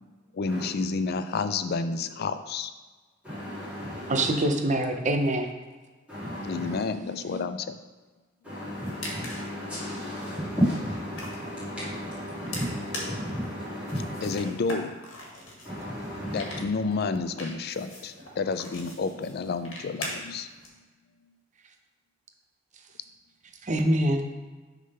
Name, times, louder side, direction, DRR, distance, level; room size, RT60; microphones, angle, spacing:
voice 1, 0.3-2.7 6.3-7.8 14.2-15.0 16.3-20.5, left 4 dB, 50° left, 10 dB, 0.4 m, -30 dB
voice 2, 3.2-4.4 6.1-6.8 8.4-14.5 15.6-16.6, equal, 5° right, -12 dB, 2.2 m, -33 dB
voice 3, 4.1-5.5 23.6-24.2, right 1 dB, 35° right, 5 dB, 0.6 m, -24 dB
sound 1, 8.7-20.7, left 1 dB, 70° left, 1.6 m, -42 dB
6.4 x 3.8 x 5.4 m, 1.3 s
head